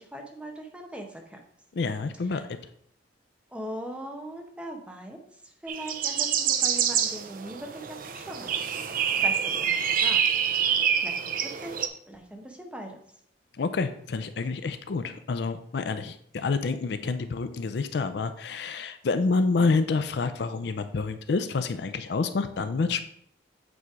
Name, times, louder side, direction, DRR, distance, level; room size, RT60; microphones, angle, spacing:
voice 1, 0.0-1.4 2.3-2.4 3.5-5.2 5.4-8.5 9.2-10.2 10.7-13.0, right 1 dB, 5° right, 2 dB, 0.8 m, -40 dB
voice 2, 1.7-2.6 13.6-23.0, left 4 dB, 60° left, 10 dB, 0.4 m, -28 dB
sound 1, 5.7-11.9, right 8 dB, 45° right, 0.5 m, -26 dB
8.1 x 3.1 x 4.7 m, 0.67 s
head